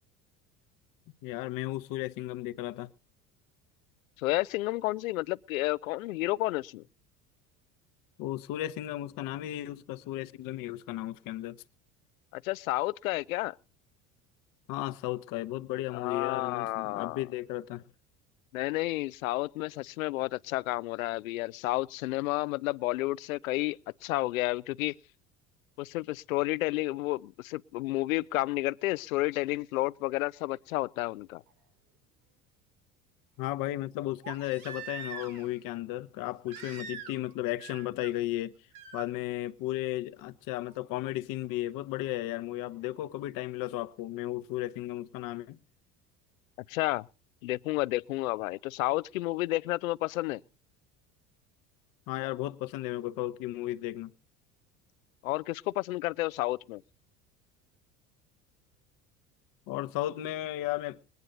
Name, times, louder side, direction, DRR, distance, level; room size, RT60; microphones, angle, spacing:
voice 1, 1.2-2.9 8.2-11.6 14.7-17.8 33.4-38.6 38.9-45.6 52.1-54.1 59.7-61.0, left 15 dB, 50° left, 1.0 m, -34 dB
voice 2, 4.2-6.8 12.3-13.6 15.9-17.2 18.5-24.9 25.8-31.4 46.7-47.1 47.4-50.4 55.2-56.8, left 19 dB, 70° left, 0.6 m, -31 dB
Crying sobbing, 31.5-31.6 34.2-35.5 36.5-37.3 37.6-38.1 38.7-39.1 40.7-40.8, right 7 dB, 70° right, 3.2 m, -43 dB
21.5 x 9.5 x 4.0 m
figure-of-eight pair, 65°, 44 cm